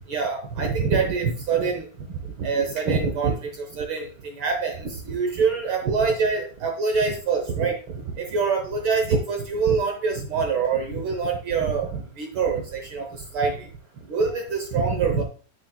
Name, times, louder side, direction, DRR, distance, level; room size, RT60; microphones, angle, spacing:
voice 1, 0.1-1.9 2.4-4.1 4.4-13.1 13.3-13.7 14.1-15.2, right 5 dB, 65° right, 4 dB, 1.3 m, -25 dB
9.5 x 7.3 x 2.2 m, 0.40 s
omnidirectional pair, 3.3 m